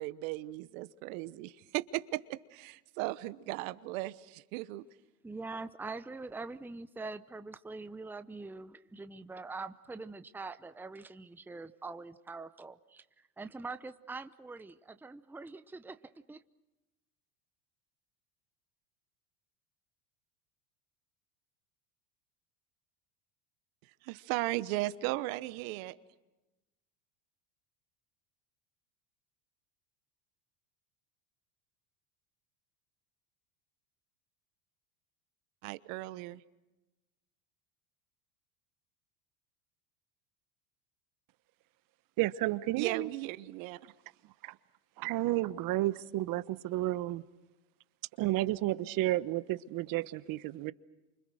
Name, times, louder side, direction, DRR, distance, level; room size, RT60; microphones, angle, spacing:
voice 1, 0.0-4.9 24.0-26.0 35.6-36.4 42.8-43.9, right 18 dB, 70° right, 15 dB, 1.1 m, -36 dB
voice 2, 5.2-16.0 16.3-16.4, right 3 dB, 5° right, 11 dB, 0.8 m, -44 dB
voice 3, 42.2-43.1 44.4-44.5 45.0-47.2 48.2-50.7, right 16 dB, 50° right, 15 dB, 1.1 m, -31 dB
28.5 x 25.5 x 6.4 m, 1.0 s
hypercardioid pair, 95°, 43 cm